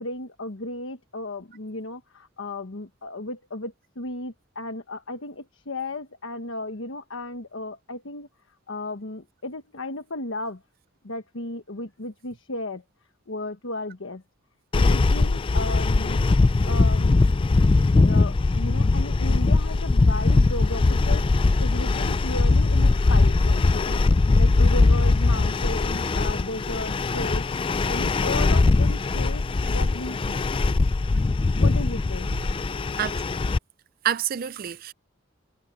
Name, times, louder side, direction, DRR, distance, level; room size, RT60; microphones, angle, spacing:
voice 1, 0.0-8.3 8.7-10.6 11.0-12.8 13.3-14.2 14.7-16.3 16.7-17.2 18.0-27.4 27.9-30.5 31.5-32.3, left 2 dB, 75° left, 1.3 m, -34 dB
sound 1, 14.7-33.6, left 3 dB, 25° left, 0.3 m, -21 dB
voice 2, 34.0-34.9, right 9 dB, 45° right, 0.4 m, -28 dB
head